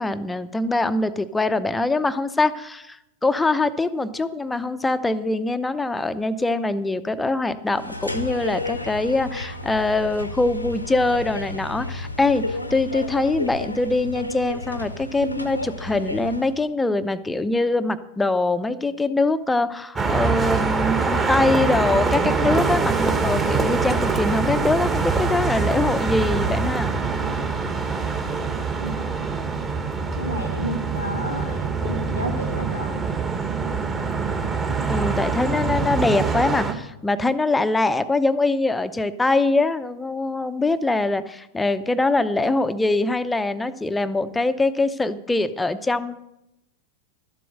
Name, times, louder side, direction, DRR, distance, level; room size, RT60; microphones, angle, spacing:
voice 1, 0.0-26.9 34.9-46.2, left 2 dB, 10° left, 12 dB, 0.6 m, -23 dB
sound 1, 7.7-16.6, left 2 dB, 85° left, 0.9 m, -32 dB
sound 2, 20.0-36.7, right 4 dB, 20° right, 1.3 m, -24 dB
voice 2, 28.8-29.2 30.2-32.9, right 1 dB, 90° right, 3 dB, 1.8 m, -31 dB
12.5 x 7.7 x 6.5 m, 0.86 s
figure-of-eight pair, 90°, 0 cm